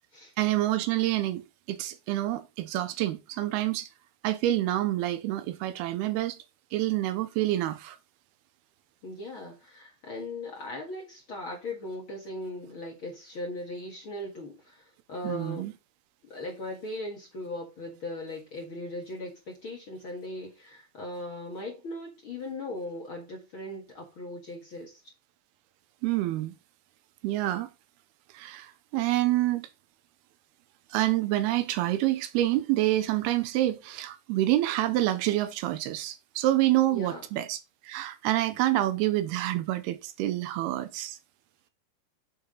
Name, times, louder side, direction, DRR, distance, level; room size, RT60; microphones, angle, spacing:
voice 1, 0.4-3.9 4.2-6.4 6.7-8.0 15.2-15.7 26.0-26.5 27.2-27.7 28.3-29.7 30.9-41.2, right 15 dB, 80° right, 2.6 m, -27 dB
voice 2, 9.0-15.7 16.2-25.0 36.9-37.3, left 1 dB, 45° left, 1.8 m, -39 dB
7.2 x 6.3 x 3.8 m
omnidirectional pair, 4.6 m